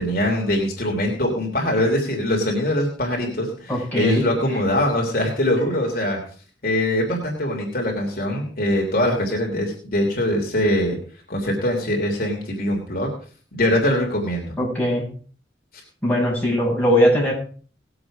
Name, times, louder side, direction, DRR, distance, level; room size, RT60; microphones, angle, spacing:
voice 1, 0.0-6.2 6.6-11.0 11.3-13.1 13.5-14.5, left 1 dB, 50° left, 0 dB, 3.2 m, -22 dB
voice 2, 3.7-4.3 14.6-15.0 16.0-17.3, equal, 10° left, -4 dB, 7.1 m, -20 dB
19.5 x 7.9 x 5.0 m, 0.42 s
head